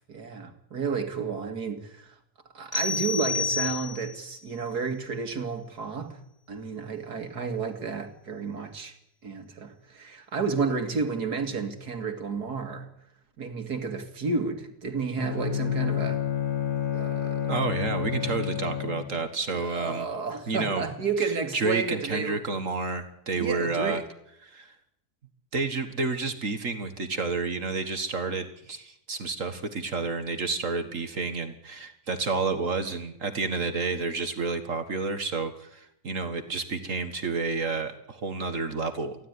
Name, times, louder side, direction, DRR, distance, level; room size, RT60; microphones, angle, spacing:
voice 1, 0.1-2.2 2.5-6.2 6.5-9.0 9.2-12.9 13.4-16.2 16.9-17.6 19.5-22.4 23.3-24.0, right 4 dB, 75° right, 2.7 m, -31 dB
sound 1, 2.7-4.3, left 4 dB, 55° left, 4.9 m, -29 dB
Bowed string instrument, 15.2-19.3, left 9 dB, 70° left, 3.7 m, -29 dB
voice 2, 17.5-20.1 20.5-20.9 21.5-24.0 24.4-24.7 25.5-39.2, right 4 dB, 55° right, 1.9 m, -30 dB
24.0 x 15.5 x 9.7 m
omnidirectional pair, 1.7 m